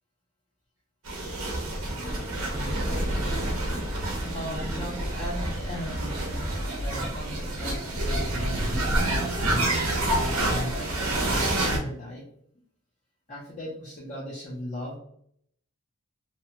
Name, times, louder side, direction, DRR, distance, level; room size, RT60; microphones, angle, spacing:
sound 1, 1.0-11.8, right 1 dB, 75° right, 0.8 m, -28 dB
voice 1, 1.8-3.0 3.3-3.7 4.2-6.4 6.8-9.8 10.1-12.2 13.3-15.0, equal, 30° left, -6 dB, 0.6 m, -39 dB
2.7 x 2.2 x 2.8 m, 0.68 s
head